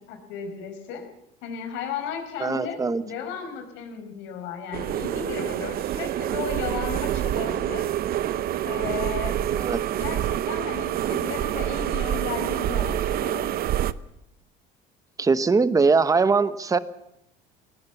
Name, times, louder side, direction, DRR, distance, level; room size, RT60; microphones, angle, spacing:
voice 1, 0.1-1.0 1.4-7.9 8.6-9.4 9.9-13.5, left 6 dB, 75° left, 5 dB, 5.1 m, -35 dB
voice 2, 2.4-3.0 9.6-9.8 15.2-16.8, right 4 dB, 15° right, 14 dB, 1.0 m, -21 dB
sound 1, 4.7-13.9, right 11 dB, 50° right, 0.8 m, -27 dB
18.5 x 18.0 x 8.3 m, 0.80 s
cardioid pair, 110°, 20 cm